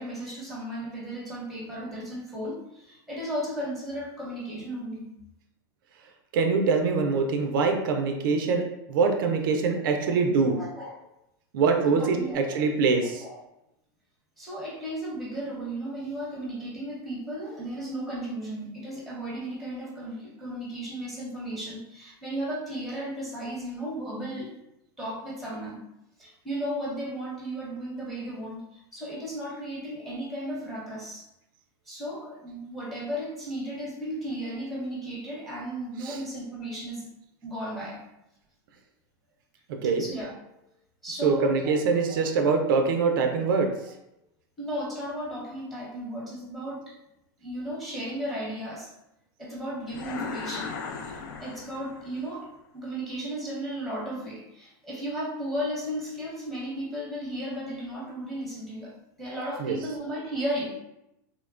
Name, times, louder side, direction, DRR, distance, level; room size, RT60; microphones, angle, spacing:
voice 1, 0.0-5.1 10.1-10.2 10.5-10.9 11.9-12.6 13.2-13.4 14.4-24.5 25.0-25.8 26.2-31.3 31.9-37.1 37.4-38.0 40.0-40.4 41.0-41.5 42.1-42.2 44.6-47.0 47.4-48.9 49.4-50.7 51.4-60.8, right 1 dB, ahead, -5 dB, 0.8 m, -35 dB
voice 2, 6.3-10.6 11.5-13.2 36.0-36.2 39.7-40.0 41.2-43.7 59.6-59.8, right 4 dB, 75° right, 4 dB, 0.4 m, -24 dB
sound 1, 49.9-52.2, left 5 dB, 65° left, 0.4 m, -37 dB
3.0 x 2.1 x 2.3 m, 0.86 s
supercardioid pair, 145°, 11 cm